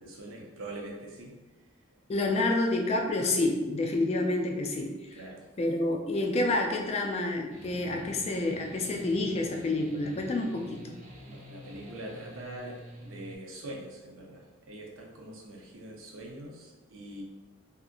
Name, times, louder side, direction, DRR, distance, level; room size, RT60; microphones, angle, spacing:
voice 1, 0.0-1.5 5.1-5.6 11.3-17.2, right 1 dB, 85° right, -1 dB, 0.6 m, -44 dB
voice 2, 2.1-4.9 5.6-11.0, left 2 dB, 30° left, 2 dB, 0.3 m, -28 dB
sound 1, 7.5-13.4, right 1 dB, 35° right, 0.4 m, -47 dB
2.8 x 2.4 x 2.5 m, 1.1 s
head